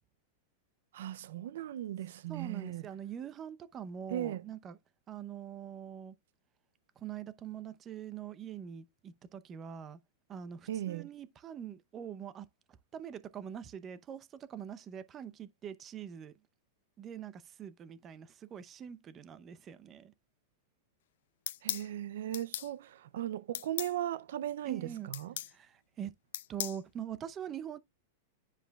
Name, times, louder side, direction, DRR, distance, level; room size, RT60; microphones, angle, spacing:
voice 1, 0.9-2.8 4.1-4.4 10.7-11.1 21.6-25.3, right 12 dB, 75° right, 0.4 m, -37 dB
voice 2, 2.3-4.8 5.1-6.1 7.0-10.0 10.3-12.5 12.9-16.3 17.0-20.1 24.6-25.1 25.5-26.1 26.5-27.8, right 9 dB, 25° right, 0.6 m, -44 dB
sound 1, 21.5-21.9 22.3-22.7 23.5-23.9 25.1-25.5 26.3-26.8, left 12 dB, 75° left, 0.4 m, -37 dB
10.0 x 4.9 x 2.3 m
supercardioid pair, 140°, 0 cm